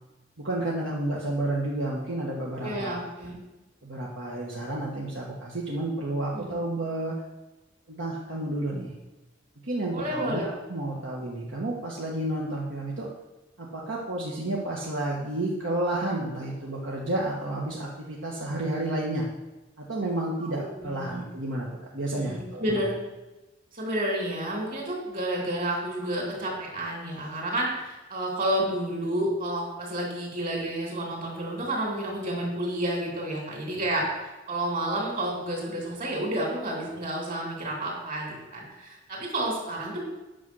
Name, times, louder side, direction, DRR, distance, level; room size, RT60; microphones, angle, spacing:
voice 1, 0.4-3.1 3.8-7.1 7.9-8.9 9.6-10.4 10.7-13.1 13.6-19.2 19.9-21.7 21.9-22.9, right 1 dB, 70° right, -4 dB, 1.5 m, -31 dB
voice 2, 2.6-3.4 6.3-6.6 9.9-10.5 20.4-21.2 22.1-23.0 23.7-40.0, right 1 dB, 45° right, -1 dB, 3.3 m, -30 dB
9.1 x 6.3 x 6.2 m, 1.1 s
head